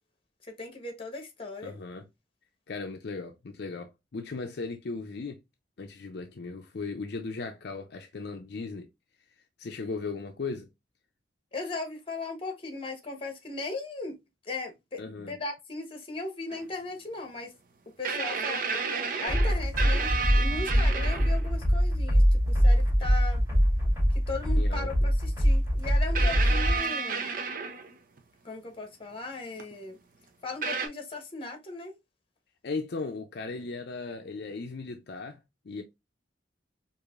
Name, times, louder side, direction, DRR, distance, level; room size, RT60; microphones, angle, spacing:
voice 1, 0.6-1.8 11.5-14.2 14.5-15.0 15.3-17.5 18.0-23.4 24.3-27.3 28.4-30.0 30.4-31.9, left 3 dB, 30° left, 1.0 m, -38 dB
voice 2, 1.6-2.1 2.7-5.4 5.8-8.9 9.6-10.7 15.0-15.4 24.6-25.1 32.6-35.4 35.6-35.8, left 4 dB, 65° left, 0.5 m, -37 dB
sound 1, 16.5-16.6 18.0-21.5 22.8-22.9 24.8-24.9 26.1-28.2 29.6-29.7 30.6-30.9, right 5 dB, 50° right, 0.6 m, -31 dB
sound 2, 19.3-26.8, equal, 20° right, 2.7 m, -23 dB
4.8 x 2.6 x 2.4 m
head